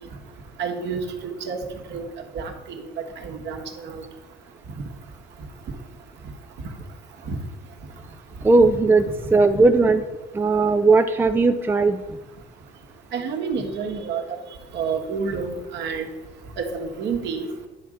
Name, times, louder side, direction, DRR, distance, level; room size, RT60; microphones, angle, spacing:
voice 1, 0.6-1.0 1.4-1.6 1.9-2.1 2.3-2.8 3.2-4.0 7.3-7.4 13.1-14.2 14.7-16.1 16.6-17.5, right 5 dB, 60° right, 2 dB, 1.5 m, -29 dB
voice 2, 8.4-9.0 9.3-10.0 10.3-12.2, right 3 dB, 10° right, 8 dB, 0.4 m, -17 dB
10.5 x 3.7 x 6.5 m, 1.1 s
cardioid pair, 110°, 20 cm